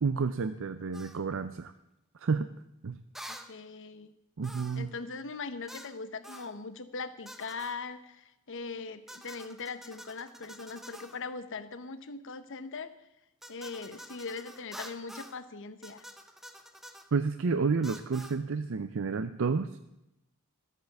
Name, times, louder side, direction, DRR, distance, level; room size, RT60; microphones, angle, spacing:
voice 1, 0.0-1.7 2.2-2.5 2.8-3.0 4.4-4.9 17.1-19.9, right 4 dB, 65° right, 10 dB, 0.5 m, -30 dB
sound 1, 0.9-1.2 3.2-3.5 4.4-4.9 5.7-6.0 6.2-6.5 7.3-7.8 9.1-11.2 13.4-15.4 15.8-17.1 17.8-18.4, equal, ahead, 0.8 m, -48 dB
voice 2, 3.2-4.1 4.8-12.9 13.5-16.0, left 4 dB, 60° left, 12 dB, 0.9 m, -40 dB
13.0 x 8.3 x 7.1 m, 0.89 s
head